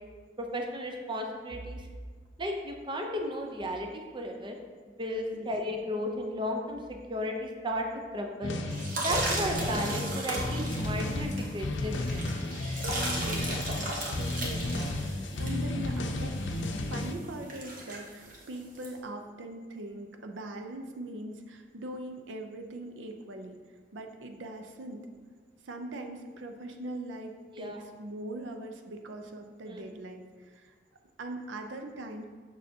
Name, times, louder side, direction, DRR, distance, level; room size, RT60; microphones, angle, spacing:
voice 1, 0.4-1.9 2.4-4.6 5.0-6.8 7.1-7.9 8.1-8.5 9.0-12.3 27.5-27.8 29.7-29.8, equal, 25° right, 3 dB, 0.6 m, -34 dB
sound 1, 8.4-17.1, left 2 dB, 75° left, 0.6 m, -33 dB
sound 2, 8.7-18.9, right 1 dB, 50° right, 1.1 m, -36 dB
voice 2, 13.2-13.5 13.8-16.4 16.8-23.6 23.9-25.1 25.6-30.7 31.2-32.2, right 1 dB, 85° right, 5 dB, 0.6 m, -41 dB
6.5 x 6.3 x 2.7 m, 1.5 s
head